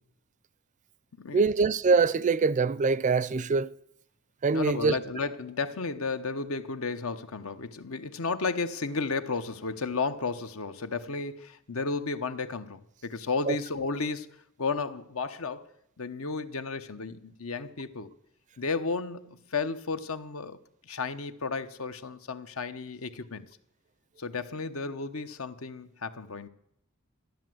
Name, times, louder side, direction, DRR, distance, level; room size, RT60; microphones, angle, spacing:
voice 1, 1.3-3.7 4.4-5.0 13.5-13.6, right 4 dB, 35° right, 0.4 m, -24 dB
voice 2, 4.5-14.3 14.6-15.7 16.0-18.1 18.6-20.6 20.8-23.4 24.2-26.5, left 4 dB, 75° left, 1.0 m, -33 dB
13.0 x 10.5 x 7.7 m
head